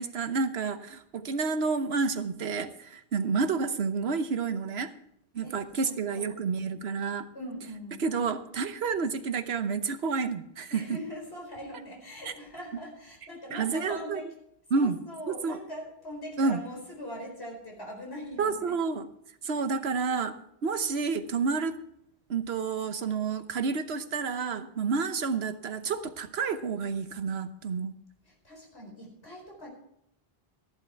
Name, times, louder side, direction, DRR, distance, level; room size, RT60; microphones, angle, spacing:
voice 1, 0.0-4.9 5.3-7.3 8.0-11.0 12.2-12.3 13.5-14.2 14.7-15.0 15.3-15.6 16.4-16.6 18.4-19.1 19.4-20.3 20.6-21.7 22.3-28.0, right 5 dB, 85° right, 10 dB, 1.2 m, -29 dB
voice 2, 5.4-6.3 7.3-8.0 10.7-14.3 14.7-18.5 28.3-29.7, equal, 80° left, 0 dB, 5.0 m, -41 dB
14.0 x 11.0 x 4.6 m, 0.74 s
omnidirectional pair, 1.1 m